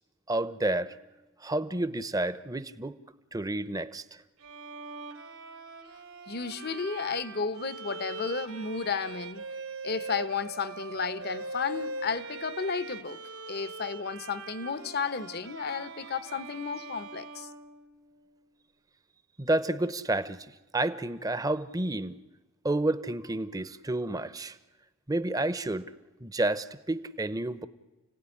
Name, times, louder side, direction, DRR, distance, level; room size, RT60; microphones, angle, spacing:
voice 1, 0.3-1.0 1.4-2.9 3.3-4.0 19.4-20.4 20.7-22.1 22.6-24.6 25.1-25.9 26.2-27.7, right 2 dB, 15° right, 0.8 m, -30 dB
Bowed string instrument, 4.4-18.3, right 3 dB, 90° right, 3.2 m, -41 dB
voice 2, 6.3-9.4 9.8-13.2 13.5-17.5, left 5 dB, 50° left, 0.9 m, -33 dB
30.0 x 17.5 x 10.0 m
head